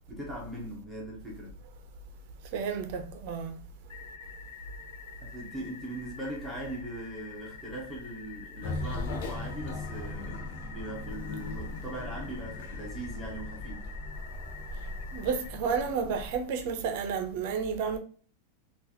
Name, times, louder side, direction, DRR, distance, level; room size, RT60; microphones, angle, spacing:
voice 1, 0.1-1.6 5.2-13.9, right 1 dB, 5° right, 0.8 m, -40 dB
voice 2, 2.5-3.6 15.1-18.0, right 6 dB, 45° right, 0.6 m, -31 dB
sound 1, 3.9-15.5, left 7 dB, 85° left, 0.7 m, -48 dB
sound 2, 8.6-16.3, left 2 dB, 55° left, 0.8 m, -38 dB
3.8 x 2.4 x 2.7 m
supercardioid pair, 170°, 0 cm